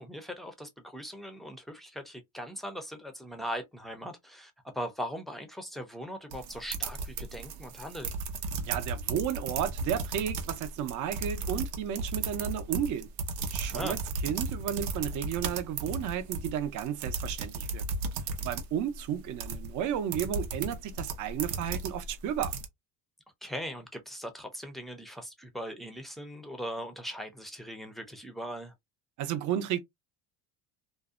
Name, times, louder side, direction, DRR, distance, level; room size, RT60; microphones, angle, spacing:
voice 1, 0.0-8.1 13.7-14.0 23.4-28.7, equal, ahead, 0.5 m, -40 dB
sound 1, 6.3-22.7, right 4 dB, 90° right, 0.7 m, -35 dB
voice 2, 8.7-13.1 13.5-17.8 18.4-22.5 29.2-29.8, right 9 dB, 50° right, 0.6 m, -33 dB
2.6 x 2.1 x 2.4 m
cardioid pair, 120°, 38 cm